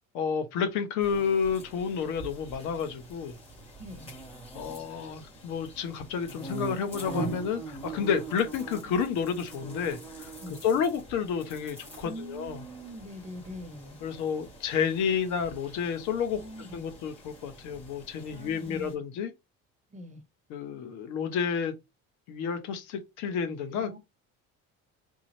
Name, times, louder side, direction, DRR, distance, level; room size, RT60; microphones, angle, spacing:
voice 1, 0.1-3.4 4.5-10.3 10.6-12.6 14.0-16.4 16.7-19.3 20.5-21.7 22.3-24.0, left 6 dB, 80° left, 1.2 m, -30 dB
sound 1, 1.0-18.9, right 2 dB, 20° left, 2.4 m, -43 dB
voice 2, 3.8-4.1 8.8-8.9 10.4-10.6 12.0-14.0 16.3-16.9 18.3-18.9 19.9-20.2 23.8-24.0, equal, 25° right, 1.0 m, -43 dB
3.8 x 3.8 x 3.1 m
cardioid pair, 135°, 29 cm